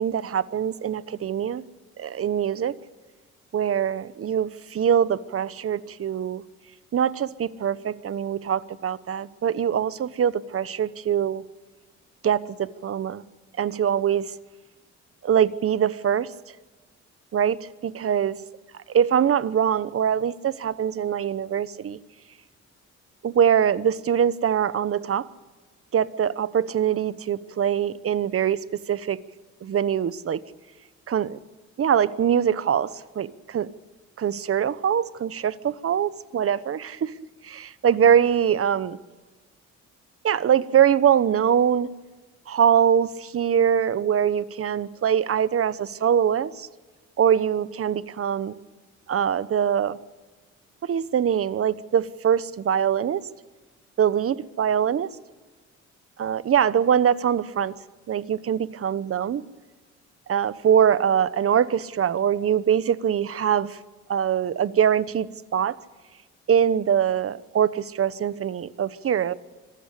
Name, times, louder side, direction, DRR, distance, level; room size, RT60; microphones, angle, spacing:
voice 1, 0.0-1.6 2.0-2.8 3.5-6.4 6.9-11.4 12.2-13.2 13.6-14.3 15.2-16.3 17.3-18.4 18.9-22.0 23.2-25.3 25.9-29.2 29.6-30.4 31.1-31.4 31.8-33.7 34.2-37.1 37.4-39.0 40.2-41.9 42.5-46.7 47.2-48.6 49.1-50.0 50.8-53.3 54.0-55.1 56.2-57.7 58.1-59.4 60.3-63.8 64.1-65.8 66.5-69.3, right 8 dB, 50° right, 17 dB, 1.0 m, -23 dB
25.5 x 15.5 x 8.3 m, 1.3 s
cardioid pair, 90°, 30 cm